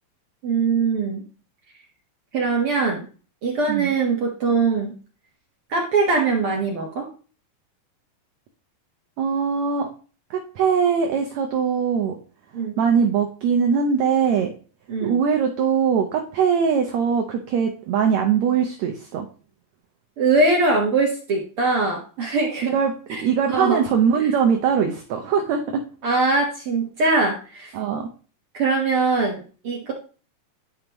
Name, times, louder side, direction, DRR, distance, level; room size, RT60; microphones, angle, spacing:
voice 1, 0.4-1.2 2.3-3.1 3.4-4.9 5.7-7.1 12.5-12.7 14.9-15.1 20.2-22.8 23.1-23.2 23.5-23.8 24.1-24.2 26.0-27.7 28.5-29.9, right 3 dB, 60° right, -1 dB, 1.4 m, -22 dB
voice 2, 9.2-9.9 10.3-12.1 12.8-14.5 15.0-19.3 22.6-25.8 27.7-28.1, right 7 dB, 75° right, 3 dB, 1.6 m, -21 dB
11.5 x 5.3 x 3.0 m, 0.38 s
omnidirectional pair, 4.2 m